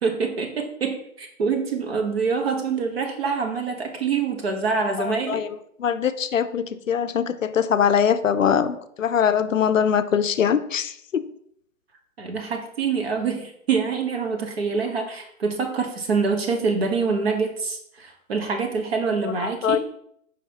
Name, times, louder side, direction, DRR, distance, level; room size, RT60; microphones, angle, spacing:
voice 1, 0.0-5.4 12.2-19.8, right 5 dB, 45° right, 4 dB, 1.2 m, -25 dB
voice 2, 5.0-5.5 5.8-11.2 19.4-19.8, left 8 dB, 65° left, 11 dB, 0.6 m, -22 dB
6.6 x 5.0 x 2.9 m, 0.70 s
figure-of-eight pair, 130°, 42 cm